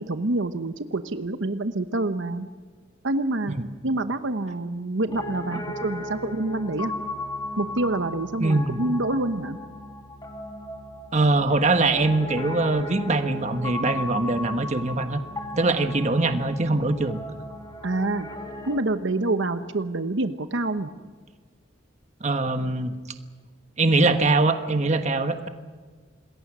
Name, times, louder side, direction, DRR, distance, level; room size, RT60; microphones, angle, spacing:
voice 1, 0.0-2.5 3.0-3.6 3.8-6.9 7.6-9.6 17.8-18.3 18.7-20.9, right 2 dB, 75° right, 10 dB, 1.0 m, -27 dB
Piano, 5.1-18.8, left 2 dB, 20° left, 2.0 m, -36 dB
voice 2, 8.4-8.8 11.1-15.2 15.6-17.2 22.2-22.9 23.8-25.5, right 2 dB, 35° right, 8 dB, 1.3 m, -22 dB
27.0 x 21.0 x 6.2 m, 1.5 s
head